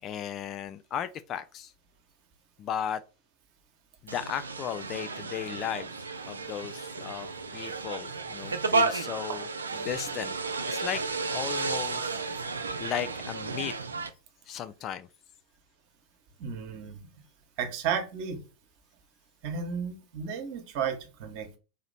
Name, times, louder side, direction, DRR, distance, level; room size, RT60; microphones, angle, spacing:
voice 1, 0.0-1.7 2.6-3.0 4.0-9.5 9.7-10.3 10.7-11.0 11.3-12.3 12.8-13.8 14.5-15.1, left 9 dB, 30° left, 0.3 m, -36 dB
sound 1, 4.1-14.1, right 4 dB, 75° right, 0.4 m, -32 dB
voice 2, 16.4-17.0 17.6-18.4 19.4-21.6, right 7 dB, 45° right, 1.0 m, -33 dB
4.1 x 3.0 x 4.0 m
figure-of-eight pair, 90°, 0 cm